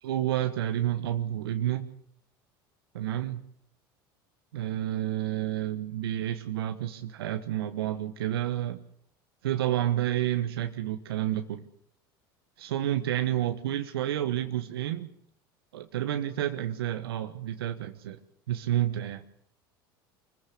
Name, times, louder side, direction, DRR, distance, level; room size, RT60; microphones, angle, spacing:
voice 1, 0.0-1.9 2.9-3.4 4.5-8.8 9.4-11.7 12.6-15.1 15.7-18.2 18.5-19.2, right 12 dB, 85° right, 8 dB, 1.3 m, -30 dB
25.5 x 15.0 x 8.5 m, 0.67 s
hypercardioid pair, 80°, 12 cm